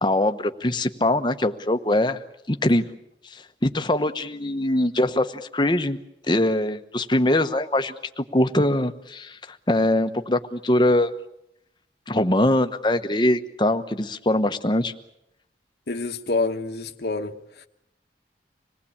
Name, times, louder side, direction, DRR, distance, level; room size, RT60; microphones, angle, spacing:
voice 1, 0.0-2.2 2.5-2.9 3.3-6.0 6.3-11.1 12.1-14.9, left 1 dB, 25° left, 1.1 m, -22 dB
voice 2, 15.9-17.3, left 3 dB, 65° left, 1.2 m, -27 dB
26.5 x 19.0 x 8.6 m
head